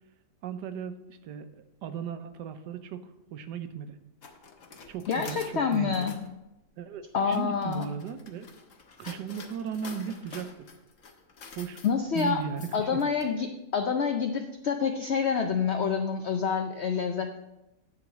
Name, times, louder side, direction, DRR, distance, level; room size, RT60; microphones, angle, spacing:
voice 1, 0.4-4.0 4.9-6.1 6.8-8.5 9.0-10.7 11.6-11.8 12.1-13.1, right 7 dB, 85° right, 10 dB, 1.3 m, -37 dB
sound 1, 4.2-6.3 7.1-13.2, left 5 dB, 55° left, 1.1 m, -48 dB
voice 2, 5.1-6.1 7.1-7.9 9.0-9.1 11.8-12.4 12.7-17.4, left 6 dB, 75° left, 5 dB, 0.6 m, -27 dB
9.8 x 4.0 x 6.2 m, 0.94 s
omnidirectional pair, 1.8 m